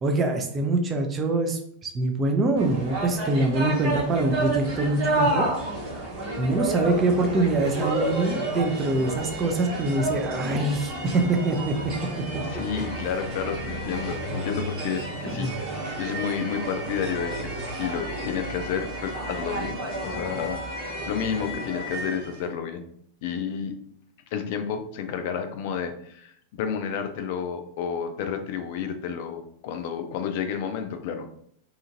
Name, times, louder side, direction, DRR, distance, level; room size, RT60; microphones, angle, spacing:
voice 1, 0.0-5.5 6.4-11.8 12.3-12.4 15.4-15.5, right 2 dB, 20° right, 3 dB, 0.5 m, -24 dB
sound 1, 2.6-22.4, right 1 dB, 40° right, 1.0 m, -31 dB
voice 2, 12.5-15.7 16.0-19.8 20.0-22.9 23.2-23.7 24.3-31.3, left 7 dB, 50° left, 7 dB, 0.4 m, -31 dB
2.8 x 2.5 x 2.6 m, 0.67 s
figure-of-eight pair, 90°, 0 cm